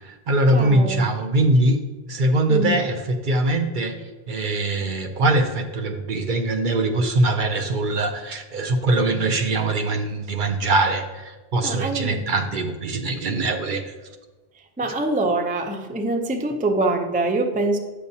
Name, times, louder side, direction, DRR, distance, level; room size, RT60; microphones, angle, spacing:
voice 1, 0.0-1.8 2.1-3.9 4.3-13.9, right 2 dB, 55° right, 6 dB, 0.7 m, -22 dB
voice 2, 0.5-1.1 2.5-2.8 11.6-12.3 14.8-17.8, right 2 dB, 15° right, 4 dB, 0.3 m, -24 dB
9.6 x 6.6 x 2.7 m, 1.2 s
omnidirectional pair, 1.1 m